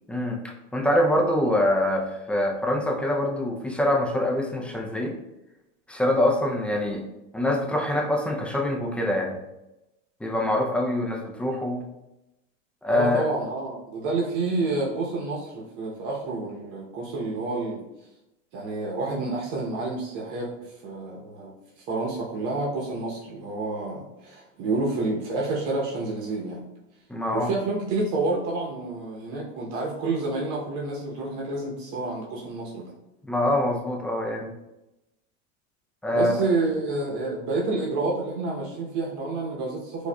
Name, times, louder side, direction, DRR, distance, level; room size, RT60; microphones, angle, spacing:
voice 1, 0.1-0.4 0.7-5.2 5.9-7.0 7.3-9.4 10.2-11.9 12.8-13.3 27.1-27.5 33.3-34.5 36.0-36.3, left 1 dB, 5° left, 0 dB, 0.3 m, -24 dB
voice 2, 12.9-17.8 18.5-26.6 27.3-32.9 36.1-40.1, right 3 dB, 55° right, -3 dB, 0.8 m, -29 dB
4.6 x 2.4 x 2.2 m, 0.93 s
hypercardioid pair, 105°, 38 cm